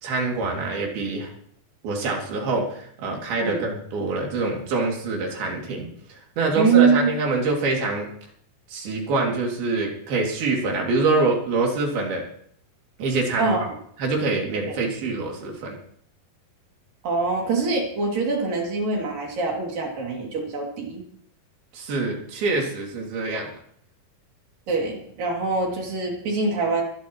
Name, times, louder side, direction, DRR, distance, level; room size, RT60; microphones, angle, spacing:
voice 1, 0.0-1.3 1.8-8.1 8.7-12.2 13.0-13.5 14.0-15.8 21.7-23.5, right 3 dB, 85° right, -1 dB, 4.7 m, -25 dB
voice 2, 6.6-7.1 13.4-13.6 14.7-14.8 17.0-21.0 24.7-26.8, right 4 dB, 65° right, -1 dB, 4.5 m, -24 dB
24.0 x 12.0 x 3.1 m, 0.64 s
omnidirectional pair, 4.2 m